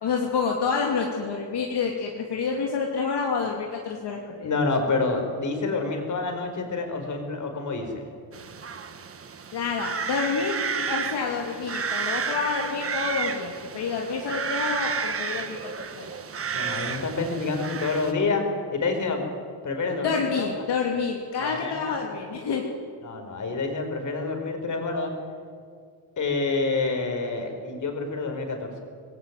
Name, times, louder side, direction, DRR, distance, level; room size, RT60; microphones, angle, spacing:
voice 1, 0.0-4.5 9.5-16.1 20.0-22.6, left 5 dB, 60° left, 0 dB, 2.8 m, -28 dB
voice 2, 4.4-8.1 16.5-18.4 18.7-19.3 19.6-20.5 21.4-22.0 23.0-25.1 26.2-28.8, left 3 dB, 40° left, 4 dB, 4.8 m, -28 dB
sound 1, 8.3-18.1, right 6 dB, 30° right, 1.3 m, -32 dB
25.5 x 20.5 x 9.5 m, 2.1 s
cardioid pair, 180°, 46 cm